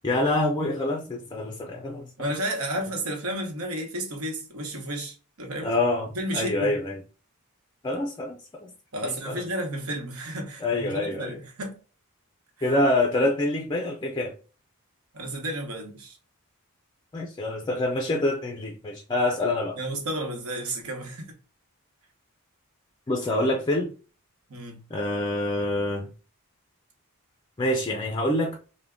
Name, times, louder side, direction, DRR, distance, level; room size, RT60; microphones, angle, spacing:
voice 1, 0.0-2.1 5.6-7.0 7.8-8.7 9.0-9.4 10.6-11.3 12.6-14.3 17.1-19.8 23.1-23.9 24.9-26.1 27.6-28.6, left 1 dB, 20° left, 0.4 m, -26 dB
voice 2, 2.2-5.7 6.1-6.8 8.9-11.8 12.6-12.7 15.1-16.2 19.7-21.3 24.5-24.8, right 1 dB, 70° right, 1.1 m, -32 dB
3.5 x 2.2 x 3.6 m
head